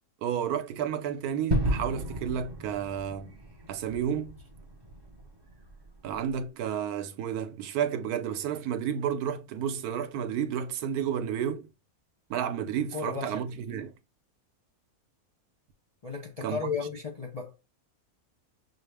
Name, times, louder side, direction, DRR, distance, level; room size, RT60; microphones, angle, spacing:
voice 1, 0.2-3.4 3.7-4.4 6.0-11.7 12.3-13.9 16.4-16.6, right 8 dB, 85° right, 1.1 m, -31 dB
Gunshot gunfire / Fireworks / Boom, 1.5-6.3, right 1 dB, 30° right, 0.4 m, -34 dB
voice 2, 12.9-13.5 16.0-17.6, left 5 dB, 40° left, 0.5 m, -34 dB
5.9 x 2.1 x 3.3 m
omnidirectional pair, 1.6 m